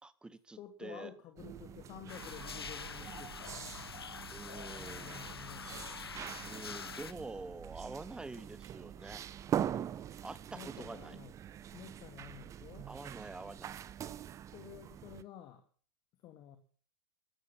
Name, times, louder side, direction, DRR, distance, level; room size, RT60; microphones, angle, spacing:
voice 1, 0.0-1.1 4.3-5.2 6.5-9.7 10.2-11.2 12.9-13.8, right 3 dB, 5° right, 15 dB, 1.2 m, -47 dB
voice 2, 0.6-3.8 4.8-6.0 10.5-11.3 11.7-12.9 14.5-15.7 16.2-16.6, left 10 dB, 35° left, 8 dB, 2.2 m, -51 dB
sound 1, 1.4-15.2, right 10 dB, 25° right, 0.9 m, -43 dB
sound 2, 2.1-7.1, left 6 dB, 80° left, 1.0 m, -45 dB
14.0 x 13.5 x 7.2 m, 0.43 s
figure-of-eight pair, 100°, 13 cm